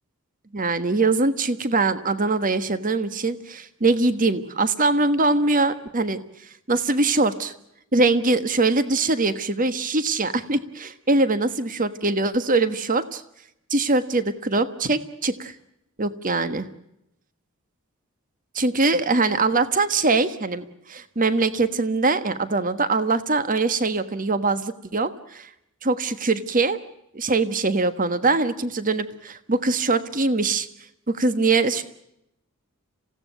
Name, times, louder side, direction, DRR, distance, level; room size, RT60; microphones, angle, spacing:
voice 1, 0.5-6.2 6.7-7.5 7.9-13.2 13.7-15.5 16.0-16.7 18.5-25.5 25.8-26.8 27.1-30.7 31.1-31.8, right 3 dB, 40° right, 12 dB, 1.4 m, -22 dB
27.5 x 17.0 x 9.3 m, 0.80 s
head